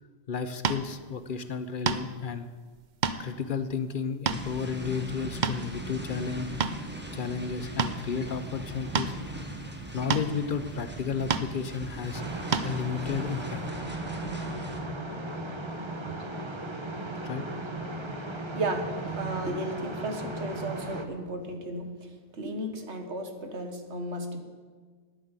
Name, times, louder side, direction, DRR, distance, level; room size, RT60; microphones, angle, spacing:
voice 1, 0.3-2.5 3.2-6.5 7.1-9.1 9.9-12.2 12.6-13.6 17.2-17.5, left 6 dB, 55° left, 11 dB, 0.7 m, -32 dB
sound 1, 0.6-0.8 1.9-2.2 2.8-3.2 3.7-3.8 4.3-4.4 5.2-5.8 6.3-6.8 7.8-8.0 8.9-9.1 10.1-10.3 11.3-11.5 12.5-12.7, right 6 dB, 50° right, 0.7 m, -28 dB
sound 2, 4.3-14.8, right 1 dB, 10° right, 1.3 m, -40 dB
sound 3, 12.1-21.0, right 2 dB, 25° right, 1.0 m, -36 dB
voice 2, 18.4-24.4, right 1 dB, 85° right, 5 dB, 1.7 m, -34 dB
10.0 x 9.4 x 8.1 m, 1.5 s
omnidirectional pair, 1.1 m